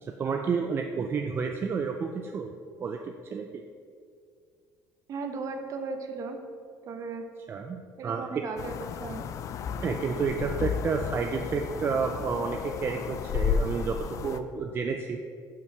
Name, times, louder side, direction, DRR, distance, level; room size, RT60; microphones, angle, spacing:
voice 1, 0.0-2.5 2.8-3.6 7.5-8.2 9.8-15.2, right 5 dB, 30° right, 4 dB, 0.4 m, -30 dB
voice 2, 5.1-6.4 6.9-7.2 8.0-9.2, right 4 dB, 45° right, 5 dB, 0.8 m, -36 dB
sound 1, 8.6-14.4, left 6 dB, 45° left, 0.4 m, -33 dB
5.6 x 4.5 x 6.4 m, 2.2 s
cardioid pair, 125°, 7 cm